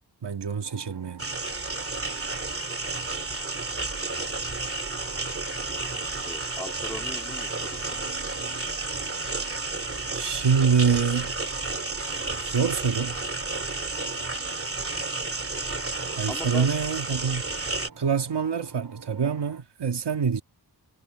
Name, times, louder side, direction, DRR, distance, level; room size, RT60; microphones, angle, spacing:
voice 1, 0.2-1.3 10.1-11.3 12.0-13.2 16.1-17.4 18.0-20.4, right 6 dB, 75° right, 2.1 m, -26 dB
sound 1, 0.6-19.6, right 5 dB, 55° right, 7.6 m, -48 dB
sound 2, 1.2-17.9, right 3 dB, 30° right, 2.9 m, -31 dB
voice 2, 2.3-2.8 6.2-8.1 16.3-16.7, left 1 dB, 5° left, 2.8 m, -40 dB
wide cardioid pair, 135°, 41 cm